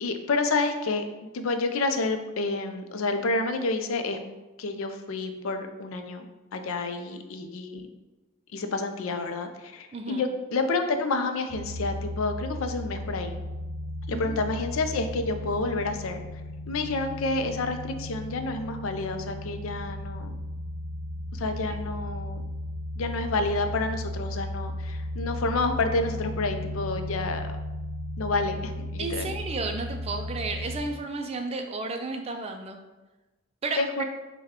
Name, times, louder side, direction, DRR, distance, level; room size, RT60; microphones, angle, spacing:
voice 1, 0.0-1.0 1.3-4.2 4.6-7.9 8.5-13.3 14.1-16.2 16.7-20.3 21.3-22.4 23.0-27.5 28.2-29.3 33.8-34.0, left 3 dB, 75° left, 7 dB, 0.4 m, -29 dB
voice 2, 9.9-10.3 14.1-14.4 29.0-32.8 33.6-34.0, right 3 dB, 30° right, 5 dB, 0.3 m, -32 dB
sound 1, 11.5-30.8, left 1 dB, 55° left, 0.8 m, -35 dB
5.5 x 2.2 x 3.5 m, 1.1 s
head